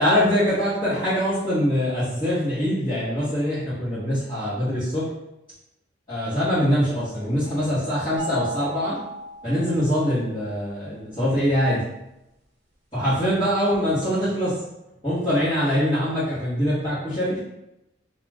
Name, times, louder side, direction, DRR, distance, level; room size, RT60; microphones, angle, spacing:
voice 1, 0.0-5.1 6.1-9.0 9.4-11.8 12.9-14.6 15.0-17.4, equal, 25° left, -14 dB, 1.1 m, -23 dB
sound 1, 8.2-10.4, right 2 dB, 65° right, 0.7 m, -37 dB
2.4 x 2.4 x 3.2 m, 0.88 s
head